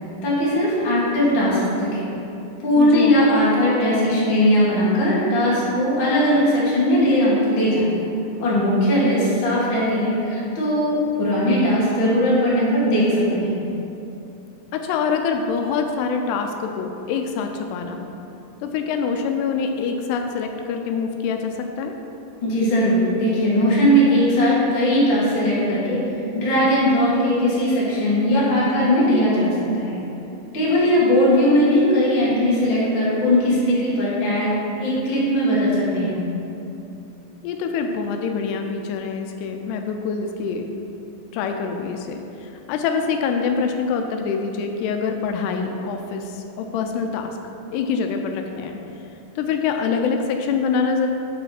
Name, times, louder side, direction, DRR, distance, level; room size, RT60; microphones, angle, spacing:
voice 1, 0.2-2.0 2.6-7.9 8.4-13.6 22.4-26.0 26.3-29.9 30.5-36.2, equal, 50° left, -7 dB, 1.5 m, -19 dB
voice 2, 2.8-3.2 14.7-18.2 18.6-22.0 37.4-40.7 41.3-47.4 47.7-48.8 49.4-51.1, left 5 dB, 85° left, 4 dB, 2.6 m, -25 dB
6.4 x 5.2 x 5.7 m, 2.8 s
omnidirectional pair, 4.8 m